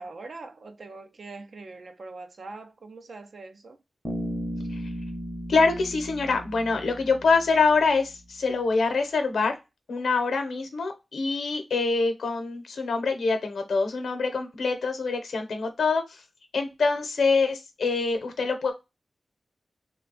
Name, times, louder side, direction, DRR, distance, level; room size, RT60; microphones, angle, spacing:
voice 1, 0.0-3.8, right 3 dB, 50° right, 0.5 m, -42 dB
Bass guitar, 4.0-7.9, equal, 10° right, 0.8 m, -35 dB
voice 2, 5.5-9.6 9.9-16.2 16.5-18.7, left 4 dB, 90° left, 0.8 m, -25 dB
3.3 x 2.3 x 3.7 m
wide cardioid pair, 170°, 0 cm